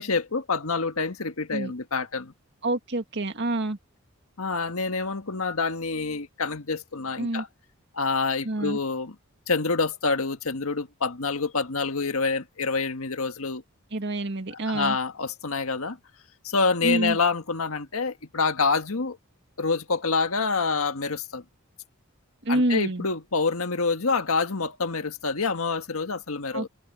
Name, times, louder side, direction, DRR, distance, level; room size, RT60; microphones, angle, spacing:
voice 1, 0.0-2.3 4.4-7.5 7.9-9.2 9.5-13.6 14.5-16.0 16.4-19.2 19.6-21.4 22.5-26.7, left 4 dB, 80° left, 1.6 m, -27 dB
voice 2, 2.6-3.8 7.2-7.4 8.4-8.8 13.9-15.0 16.8-17.2 22.4-23.0 26.5-26.7, right 1 dB, 55° right, 2.1 m, -27 dB
head